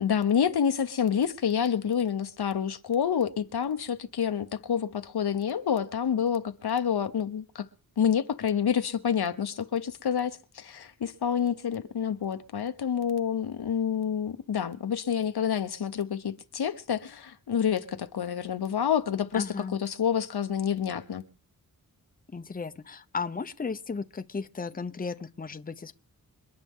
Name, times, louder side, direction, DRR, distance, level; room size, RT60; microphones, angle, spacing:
voice 1, 0.0-7.7 8.0-21.2, left 8 dB, 90° left, 1.0 m, -28 dB
voice 2, 19.3-19.8 22.3-26.0, left 4 dB, 25° left, 0.7 m, -35 dB
28.0 x 10.5 x 3.7 m
wide cardioid pair, 130°, 37 cm